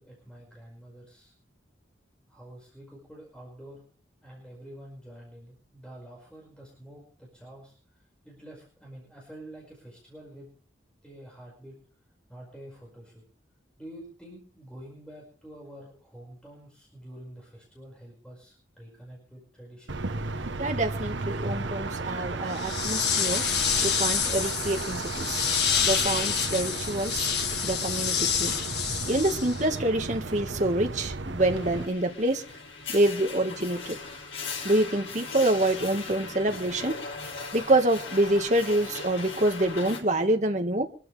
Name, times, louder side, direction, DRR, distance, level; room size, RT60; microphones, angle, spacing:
voice 1, 0.0-1.3 2.3-3.8 4.2-10.5 11.0-11.8 12.3-13.2 13.8-20.0, right 1 dB, 5° left, 5.4 m, -47 dB
sound 1, 19.9-31.9, right 3 dB, 75° right, 1.0 m, -34 dB
voice 2, 20.6-23.4 23.7-25.4 25.8-27.3 27.6-28.6 29.0-32.4 32.9-34.0 34.6-37.0 37.5-40.8, right 1 dB, 40° right, 1.7 m, -26 dB
sound 2, 22.5-29.8, left 7 dB, 60° left, 1.7 m, -28 dB
sound 3, 31.4-40.0, left 4 dB, 90° left, 6.1 m, -39 dB
25.0 x 13.5 x 3.4 m
head